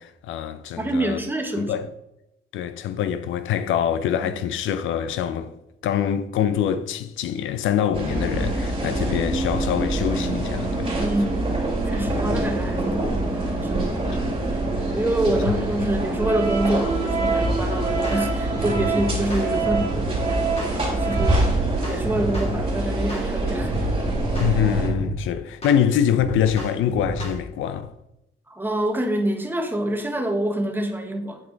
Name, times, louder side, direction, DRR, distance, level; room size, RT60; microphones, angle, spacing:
voice 1, 0.0-1.2 1.6-1.9 2.5-11.0 12.1-12.4 14.2-14.5 15.3-15.6 15.8-15.9 24.4-27.9, left 9 dB, 80° left, 0.5 m, -25 dB
voice 2, 0.8-1.7 7.9-8.0 8.8-9.0 11.0-11.5 11.8-13.2 13.6-14.2 14.9-20.4 20.7-21.4 21.8-23.7 28.5-31.4, right 1 dB, 10° right, 1.3 m, -26 dB
sound 1, 7.9-24.9, right 2 dB, 30° right, 3.0 m, -25 dB
sound 2, 17.4-17.6 18.0-18.2 18.5-20.1 20.6-20.7 21.1-22.7 23.1-23.3 23.6-25.2 25.6-25.8 26.1-27.4, equal, 30° left, 2.4 m, -31 dB
8.9 x 4.5 x 4.0 m
cardioid pair, 90°, 20 cm